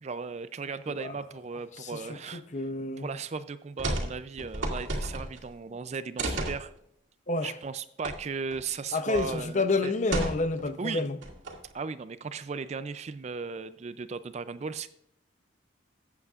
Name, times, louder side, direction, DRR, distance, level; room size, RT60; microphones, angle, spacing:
voice 1, 0.0-2.4 3.0-6.7 7.4-9.9 10.8-11.0 11.7-14.9, right 5 dB, 35° right, 0.4 m, -36 dB
voice 2, 1.8-3.1 7.3-7.5 8.9-11.2, left 3 dB, 40° left, 0.6 m, -29 dB
sound 1, 3.8-4.1 4.4-5.5 6.2-6.6 8.0-8.2 8.5-8.6 9.1-9.4 10.1-10.7 11.2-11.7, right 1 dB, 75° right, 2.3 m, -32 dB
14.5 x 8.2 x 2.4 m
head